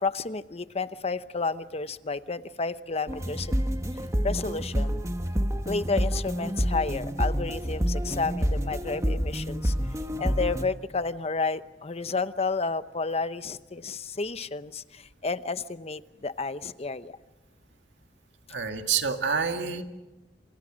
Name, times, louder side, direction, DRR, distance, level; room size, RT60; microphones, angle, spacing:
voice 1, 0.0-3.5 4.2-5.0 5.7-9.7 10.2-17.2, left 4 dB, 35° left, 13 dB, 0.8 m, -31 dB
sound 1, 3.1-10.6, equal, 15° right, 1.4 m, -28 dB
voice 2, 18.5-19.8, right 6 dB, 85° right, 5 dB, 2.2 m, -27 dB
28.5 x 27.0 x 6.3 m, 1.1 s
head